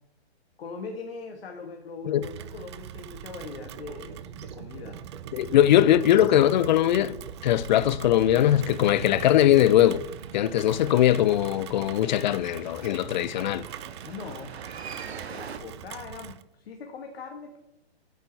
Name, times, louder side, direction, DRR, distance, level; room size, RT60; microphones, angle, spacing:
voice 1, 0.6-5.0 14.0-14.6 15.0-17.6, left 4 dB, 65° left, 1.8 m, -41 dB
Rain, 2.2-16.4, right 10 dB, 30° right, 0.4 m, -41 dB
sound 1, 3.3-7.9, right 6 dB, 60° right, 4.3 m, -46 dB
voice 2, 5.3-7.2 7.4-10.0 10.3-13.6, left 12 dB, 45° left, 0.5 m, -21 dB
sound 2, 8.4-15.6, right 6 dB, 75° right, 1.5 m, -44 dB
10.5 x 8.4 x 4.6 m
hypercardioid pair, 140°, 32 cm